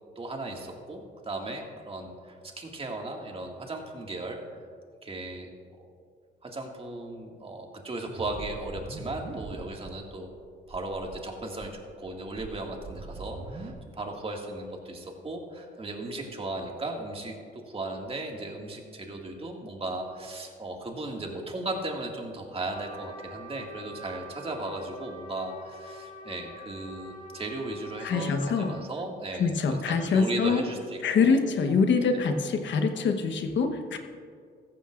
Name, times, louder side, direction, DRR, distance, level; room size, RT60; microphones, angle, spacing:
voice 1, 0.2-4.4 5.0-5.5 6.4-10.3 10.7-31.4 31.7-31.8 32.1-32.3, right 2 dB, 30° right, 1 dB, 2.1 m, -36 dB
sound 1, 8.1-9.9 10.3-10.4 10.7-11.2 11.6-13.7, right 3 dB, 45° right, 1.7 m, -42 dB
Trumpet, 22.7-28.9, left 1 dB, 40° left, 1.8 m, -45 dB
voice 2, 28.0-28.7 29.4-30.6 31.0-34.0, left 5 dB, 65° left, 6 dB, 1.2 m, -25 dB
15.0 x 14.5 x 2.5 m, 2.1 s
cardioid pair, 90°, 20 cm